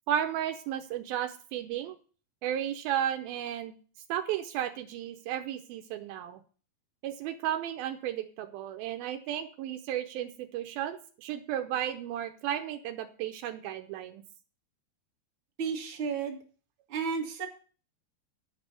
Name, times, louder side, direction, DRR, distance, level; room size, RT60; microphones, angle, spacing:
voice 1, 0.1-2.0 2.4-3.8 4.1-6.4 7.0-14.2, right 10 dB, 80° right, 6 dB, 2.6 m, -34 dB
voice 2, 15.6-16.4 16.9-17.5, right 5 dB, 45° right, 3 dB, 1.7 m, -32 dB
10.5 x 5.5 x 7.6 m, 0.39 s
omnidirectional pair, 4.4 m